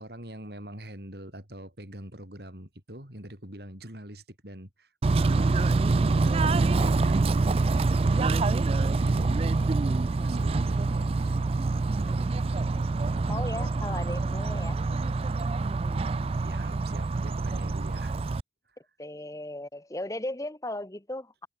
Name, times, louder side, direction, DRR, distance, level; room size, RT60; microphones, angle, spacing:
voice 1, 0.0-5.8 6.2-11.4 11.9-12.6 16.4-18.2, right 1 dB, 60° right, 5.5 m, -44 dB
Bird / Train, 5.0-18.4, right 3 dB, 35° right, 0.3 m, -26 dB
voice 2, 13.3-14.8 19.0-21.3, left 1 dB, 20° left, 1.0 m, -37 dB
head